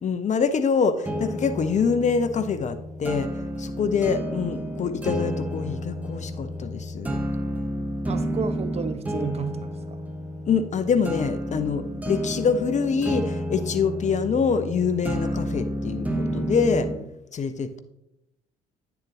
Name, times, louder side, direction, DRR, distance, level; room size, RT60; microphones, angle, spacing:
voice 1, 0.0-3.3 3.6-7.2 10.5-16.9 17.3-17.8, left 5 dB, 35° left, 0.7 m, -25 dB
sound 1, 1.0-17.0, equal, 5° right, 1.1 m, -31 dB
voice 2, 8.0-10.1, right 6 dB, 30° right, 0.5 m, -32 dB
9.5 x 7.0 x 3.0 m
figure-of-eight pair, 50°, 21 cm